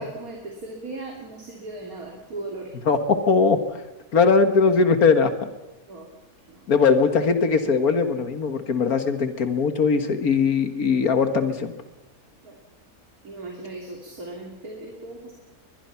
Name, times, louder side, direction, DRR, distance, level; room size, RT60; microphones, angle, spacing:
voice 1, 0.0-2.7 5.9-6.0 12.4-12.5 13.2-15.3, right 2 dB, 75° right, 0 dB, 3.4 m, -37 dB
voice 2, 2.8-3.6 4.1-5.3 6.7-11.7, left 5 dB, 75° left, 8 dB, 2.0 m, -20 dB
22.5 x 21.5 x 5.8 m, 1.0 s
omnidirectional pair, 1.6 m